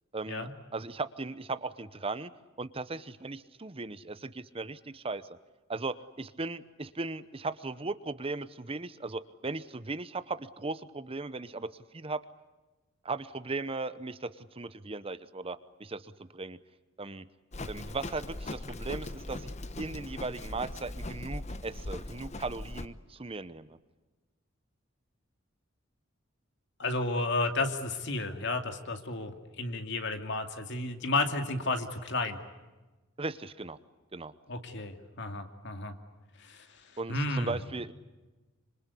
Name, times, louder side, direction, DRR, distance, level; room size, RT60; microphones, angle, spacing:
voice 1, 0.1-2.3 2.6-5.4 5.7-12.2 13.0-16.6 17.0-17.3 17.7-19.5 19.8-23.8 33.2-33.8 34.1-34.3 37.0-37.9, right 3 dB, 30° right, 14 dB, 0.9 m, -37 dB
Livestock farm animals working animals, 17.5-22.9, left 2 dB, 35° left, 1.1 m, -40 dB
voice 2, 26.8-32.4 34.5-36.0 36.4-36.7 37.1-37.6, left 2 dB, 60° left, 6 dB, 2.6 m, -32 dB
26.5 x 26.0 x 8.4 m, 1.2 s
head